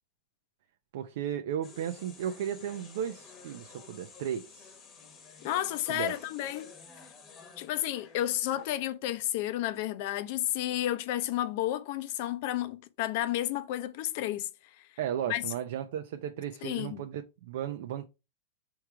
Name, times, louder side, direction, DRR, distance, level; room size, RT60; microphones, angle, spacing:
voice 1, 0.9-4.8 5.9-6.1 15.0-18.1, right 9 dB, 70° right, 0.5 m, -35 dB
sound 1, 1.6-8.7, left 5 dB, 25° left, 1.1 m, -52 dB
voice 2, 5.4-6.7 7.6-14.5 15.3-15.4 16.6-17.0, left 13 dB, 55° left, 0.6 m, -31 dB
3.6 x 3.1 x 4.6 m
supercardioid pair, 135°, 0 cm